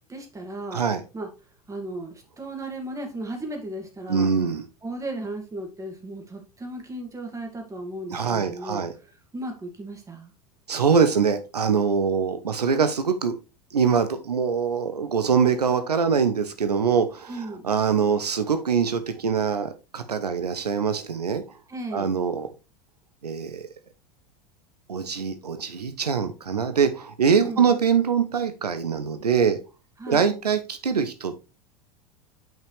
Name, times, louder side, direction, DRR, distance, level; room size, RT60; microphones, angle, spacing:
voice 1, 0.1-0.8 1.1-1.3 1.7-4.3 4.8-8.8 9.3-10.3 17.3-17.7 21.7-22.1 27.4-27.7 30.0-30.3, right 1 dB, 15° right, 2.4 m, -35 dB
voice 2, 0.7-1.0 4.1-4.6 8.1-8.9 10.7-13.4 13.7-21.4 21.9-22.5 23.2-23.6 24.9-29.6 30.1-31.5, right 6 dB, 80° right, 0.8 m, -23 dB
9.0 x 5.6 x 3.3 m
figure-of-eight pair, 80°, 20 cm